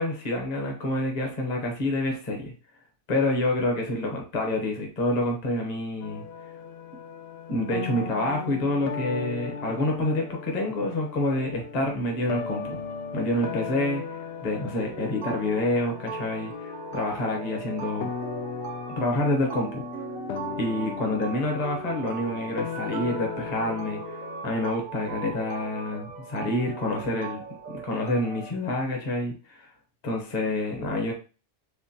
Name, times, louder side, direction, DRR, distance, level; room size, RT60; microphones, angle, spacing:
voice 1, 0.0-2.5 3.1-6.2 7.5-12.8 13.1-14.0 14.4-18.1 19.0-19.8 20.6-27.4 27.7-29.7 30.0-31.1, left 1 dB, 35° left, 1 dB, 0.9 m, -28 dB
sound 1, 6.0-24.4, left 6 dB, 70° left, 0.6 m, -37 dB
sound 2, 14.8-28.5, right 5 dB, 50° right, 0.7 m, -39 dB
3.6 x 3.2 x 2.7 m, 0.35 s
omnidirectional pair, 1.5 m